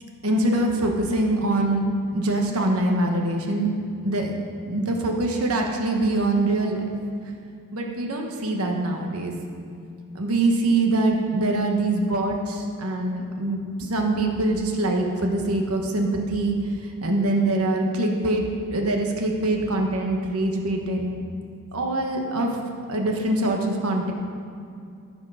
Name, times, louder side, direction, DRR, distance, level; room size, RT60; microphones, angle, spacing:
voice 1, 0.2-1.9 2.1-3.7 4.0-6.9 7.7-9.3 10.1-16.6 16.8-18.4 18.7-21.2 21.7-22.5 22.9-24.1, right 2 dB, 70° right, 2 dB, 1.2 m, -24 dB
13.5 x 5.0 x 5.6 m, 2.5 s
head